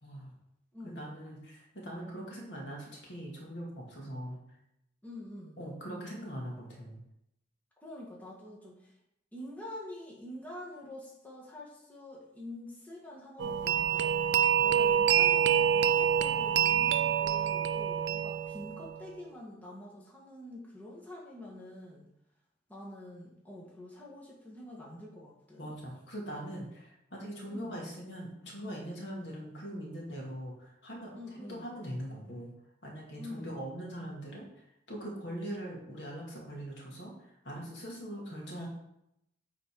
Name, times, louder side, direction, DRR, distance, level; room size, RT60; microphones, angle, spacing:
voice 1, 0.0-0.3 0.8-4.4 5.6-7.0 14.5-14.7 25.6-32.5 32.8-38.7, equal, 70° left, -2 dB, 2.2 m, -42 dB
voice 2, 0.7-1.1 5.0-5.6 7.8-8.9 9.3-14.2 14.6-22.1 22.7-25.8 27.5-27.7 31.1-31.7 33.2-33.6, left 1 dB, 10° left, -4 dB, 1.6 m, -46 dB
sound 1, 13.4-19.1, right 9 dB, 65° right, 0.4 m, -26 dB
8.7 x 4.2 x 4.8 m, 0.80 s
head